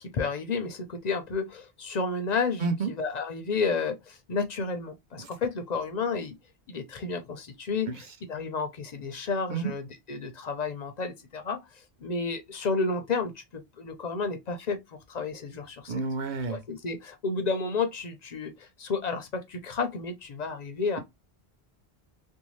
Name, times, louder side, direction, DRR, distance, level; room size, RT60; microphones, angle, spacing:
voice 1, 0.0-6.4 6.7-8.0 8.3-11.6 12.0-14.8 15.1-16.0 16.5-21.0, left 4 dB, 55° left, 0.5 m, -31 dB
voice 2, 2.6-2.9 7.9-8.0 9.5-9.7 15.9-16.6, right 4 dB, 55° right, 0.7 m, -29 dB
2.6 x 2.1 x 3.0 m
omnidirectional pair, 1.1 m